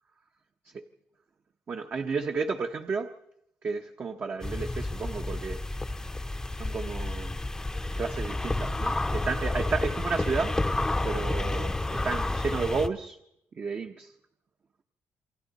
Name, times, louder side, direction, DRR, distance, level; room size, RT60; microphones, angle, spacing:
voice 1, 1.7-3.1 3.6-5.6 6.5-7.4 8.0-10.6 11.0-13.2 13.6-14.1, right 4 dB, 40° right, 0.9 m, -32 dB
sound 1, 4.4-12.9, left 2 dB, 10° left, 0.7 m, -30 dB
28.5 x 23.5 x 4.1 m
cardioid pair, 115°, 5 cm